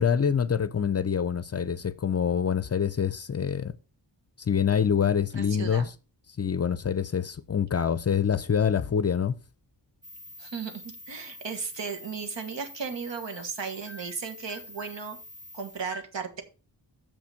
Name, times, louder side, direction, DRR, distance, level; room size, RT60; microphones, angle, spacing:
voice 1, 0.0-3.7 4.4-5.9 6.4-9.3, left 7 dB, 35° left, 0.5 m, -26 dB
voice 2, 5.3-5.9 10.4-15.2 15.5-16.4, right 5 dB, 75° right, 1.7 m, -35 dB
sound 1, 10.0-15.8, left 1 dB, 20° right, 0.4 m, -46 dB
6.9 x 5.9 x 5.7 m
wide cardioid pair, 95°, 44 cm